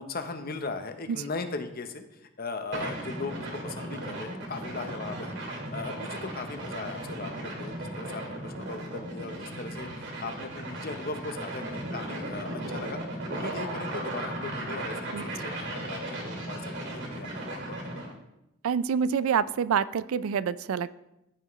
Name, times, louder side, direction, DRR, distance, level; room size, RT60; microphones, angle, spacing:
voice 1, 0.0-5.4 5.7-13.0 13.3-18.1, left 3 dB, 45° left, 7 dB, 0.8 m, -38 dB
sound 1, 2.7-18.1, right 1 dB, 55° right, 2.0 m, -36 dB
voice 2, 18.6-20.9, right 7 dB, 80° right, 17 dB, 0.4 m, -27 dB
14.5 x 5.8 x 3.1 m, 0.88 s
head